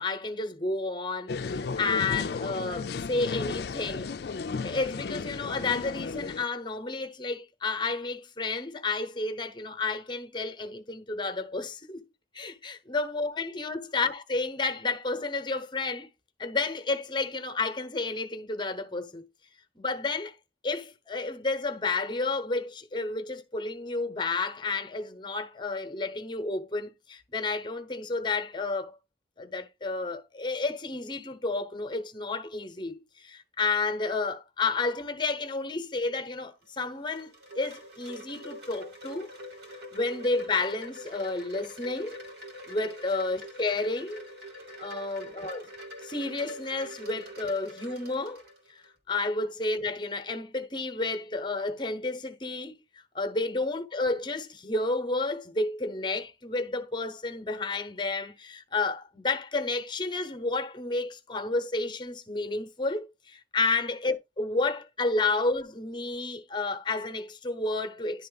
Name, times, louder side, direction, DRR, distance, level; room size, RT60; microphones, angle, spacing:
voice 1, 0.0-4.1 4.6-12.0 12.3-16.1 16.4-19.2 19.8-20.3 20.6-29.0 29.4-37.3 37.6-39.3 39.9-42.2 42.7-44.2 44.8-45.7 46.0-48.4 48.7-52.7 53.1-68.3, left 3 dB, 25° left, 0.9 m, -31 dB
sound 1, 1.3-6.4, left 4 dB, 60° left, 0.4 m, -34 dB
Wind chime, 36.6-48.9, equal, 65° right, 2.5 m, -45 dB
11.0 x 3.7 x 4.0 m
head